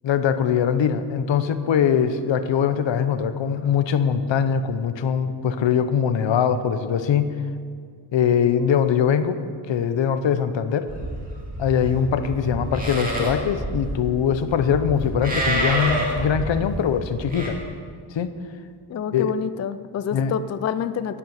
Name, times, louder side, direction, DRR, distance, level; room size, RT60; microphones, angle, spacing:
voice 1, 0.0-7.3 8.1-10.9 11.6-17.6 18.1-18.3 19.1-19.3 20.1-20.3, left 7 dB, 85° left, 11 dB, 0.9 m, -22 dB
Livestock farm animals working animals, 10.9-17.5, right 1 dB, 20° right, 2.4 m, -28 dB
voice 2, 18.9-21.2, left 8 dB, 40° left, 13 dB, 0.4 m, -27 dB
11.5 x 11.0 x 7.2 m, 2.1 s
wide cardioid pair, 155°, 43 cm